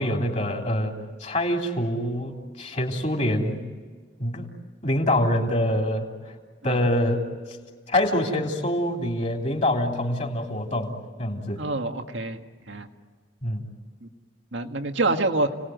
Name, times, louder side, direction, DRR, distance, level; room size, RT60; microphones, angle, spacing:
voice 1, 0.0-3.6 4.2-4.5 4.8-6.1 6.6-7.3 7.9-10.9 11.2-11.6 13.4-13.6, left 1 dB, 40° left, 1 dB, 3.4 m, -25 dB
voice 2, 11.6-12.4 12.7-12.9 14.0-14.1 14.5-15.5, right 2 dB, 90° right, 5 dB, 1.8 m, -26 dB
30.0 x 19.5 x 9.4 m, 1.5 s
head